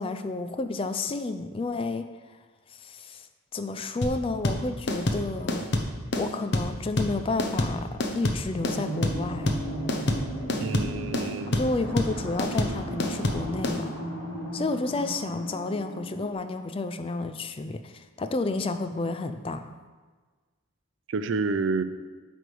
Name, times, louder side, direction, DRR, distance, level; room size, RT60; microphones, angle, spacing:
voice 1, 0.0-2.0 2.7-3.3 3.5-5.7 6.2-9.6 11.5-14.0 14.5-19.7, left 3 dB, 25° left, 9 dB, 0.3 m, -31 dB
sound 1, 4.0-13.8, left 1 dB, 55° left, 0.8 m, -27 dB
sound 2, 8.5-16.3, equal, 70° left, 1.9 m, -36 dB
voice 2, 10.6-11.7 21.1-21.8, right 4 dB, 60° right, 11 dB, 0.4 m, -29 dB
9.1 x 3.4 x 6.1 m, 1.4 s
head